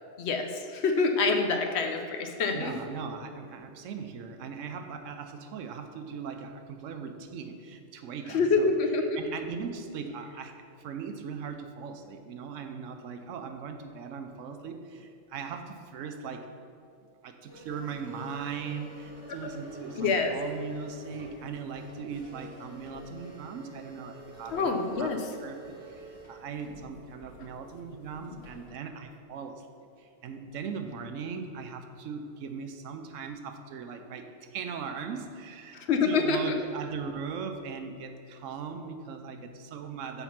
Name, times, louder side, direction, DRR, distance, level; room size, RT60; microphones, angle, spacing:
voice 1, 0.2-2.7 8.3-9.2 19.3-19.4 20.0-20.4 24.5-25.2 35.7-36.5, left 4 dB, 65° left, 5 dB, 0.8 m, -26 dB
voice 2, 2.5-8.7 9.2-16.5 17.2-24.7 25.0-29.7 30.0-40.2, right 5 dB, 80° right, 7 dB, 1.0 m, -39 dB
sound 1, 17.5-28.7, right 1 dB, 20° left, 1.7 m, -49 dB
6.9 x 4.4 x 5.6 m, 2.4 s
omnidirectional pair, 1.3 m